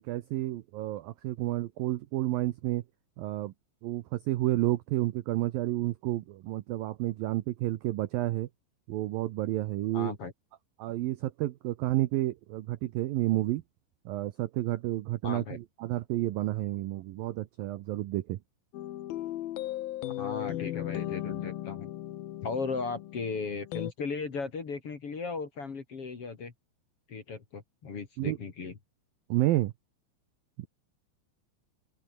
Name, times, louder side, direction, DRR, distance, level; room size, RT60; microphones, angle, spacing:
voice 1, 0.0-2.8 3.2-3.5 3.8-8.5 8.9-10.1 10.8-13.6 14.1-18.4 28.2-28.4 29.3-29.7 30.6-30.7, right 16 dB, 85° right, 2.0 m, -30 dB
voice 2, 9.9-10.3 15.2-15.6 20.2-21.9 22.4-26.5 27.1-28.8, left 4 dB, 40° left, 2.7 m, -36 dB
sound 1, 18.7-23.9, left 14 dB, 65° left, 2.5 m, -37 dB
open air
omnidirectional pair, 5.4 m